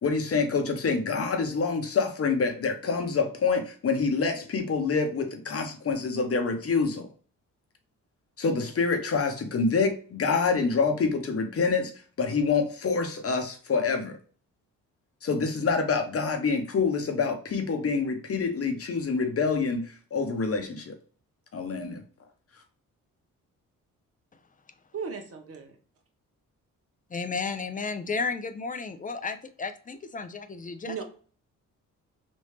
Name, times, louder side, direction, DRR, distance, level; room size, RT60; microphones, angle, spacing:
voice 1, 0.0-7.1 8.4-11.9 12.2-14.2 15.2-20.9 21.5-22.0, left 4 dB, 45° left, 0.9 m, -26 dB
voice 2, 24.9-25.7 30.8-31.0, right 5 dB, 45° right, 1.0 m, -36 dB
voice 3, 27.1-31.0, left 4 dB, 25° left, 0.4 m, -33 dB
3.2 x 2.7 x 3.2 m
cardioid pair, 80°, 33 cm